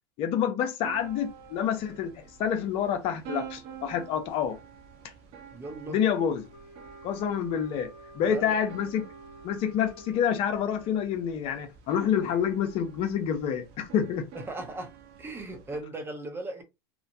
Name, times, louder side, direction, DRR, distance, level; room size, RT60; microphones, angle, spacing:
voice 1, 0.2-4.6 5.9-6.5 7.0-7.9 8.1-9.0 9.4-14.2, left 8 dB, 50° left, 0.6 m, -28 dB
sound 1, 0.8-15.8, right 8 dB, 55° right, 0.7 m, -48 dB
voice 2, 5.5-6.0 8.3-8.5 14.5-14.9 15.2-16.6, right 2 dB, 20° right, 0.8 m, -37 dB
Wind instrument woodwind instrument, 6.5-11.0, right 1 dB, 80° left, 1.0 m, -50 dB
2.9 x 2.1 x 2.6 m
hypercardioid pair, 95°, 12 cm